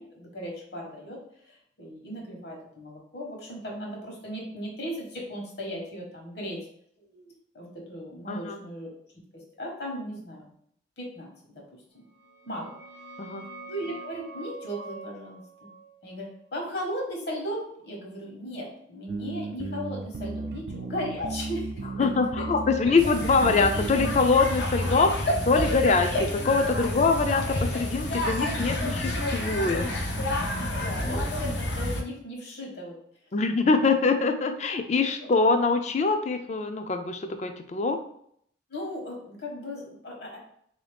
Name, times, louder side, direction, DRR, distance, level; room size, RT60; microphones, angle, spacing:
voice 1, 0.0-6.6 7.0-8.9 9.6-10.5 11.0-11.6 11.9-12.0 12.5-12.7 13.7-15.7 16.0-22.0 22.4-22.5 22.8-23.1 26.0-26.2 30.6-33.0 33.3-33.4 38.7-40.4, equal, 65° left, -1 dB, 1.2 m, -37 dB
voice 2, 8.3-8.6 13.2-13.4 22.0-29.9 33.3-38.0, left 4 dB, 40° left, 7 dB, 0.4 m, -24 dB
sound 1, 12.1-17.5, right 3 dB, 90° right, 0.7 m, -46 dB
sound 2, 19.1-24.2, right 3 dB, 65° right, 0.3 m, -35 dB
sound 3, 23.0-32.0, left 1 dB, 85° left, 0.6 m, -29 dB
3.9 x 2.7 x 3.3 m, 0.67 s
head